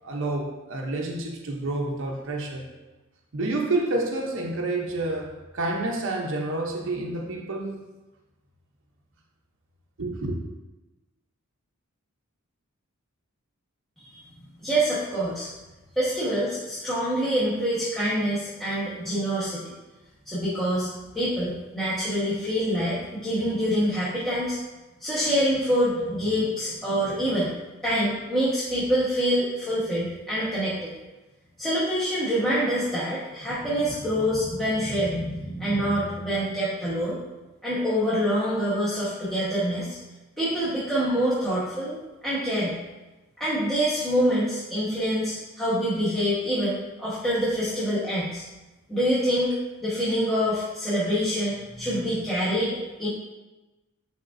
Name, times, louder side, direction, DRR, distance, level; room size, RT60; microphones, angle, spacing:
voice 1, 0.0-2.6 3.3-7.8 10.0-10.4, right 2 dB, 60° right, 1 dB, 0.8 m, -29 dB
voice 2, 14.6-15.5 16.0-19.7 20.2-20.9 21.1-24.6 25.0-27.5 27.8-30.9 31.6-37.2 37.6-40.0 40.4-42.8 43.4-48.4 48.9-49.5 49.8-53.1, equal, ahead, -11 dB, 1.2 m, -26 dB
10.0 x 3.6 x 2.6 m, 1.1 s
head